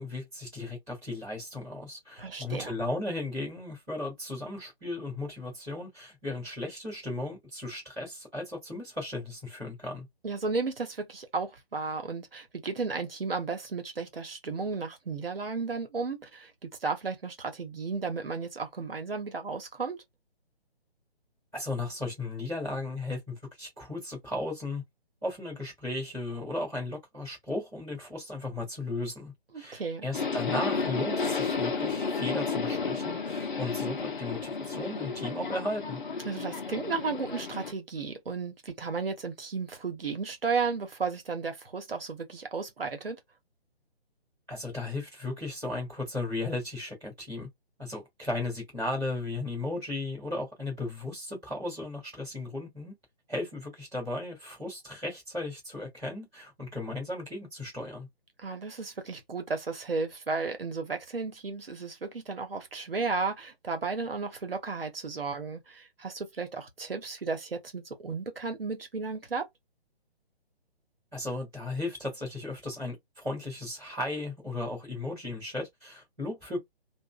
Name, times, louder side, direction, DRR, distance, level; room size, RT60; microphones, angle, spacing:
voice 1, 0.0-10.1 21.5-24.8 25.2-36.0 44.5-47.5 47.8-52.9 53.3-58.1 71.1-76.6, left 2 dB, ahead, 0.5 m, -35 dB
voice 2, 2.2-2.7 10.2-20.0 29.5-30.0 36.2-43.2 58.4-69.5, right 4 dB, 65° right, 1.0 m, -34 dB
Subway metro underground, 30.1-37.7, left 5 dB, 50° left, 0.7 m, -32 dB
2.9 x 2.4 x 2.4 m
figure-of-eight pair, 140°, 31 cm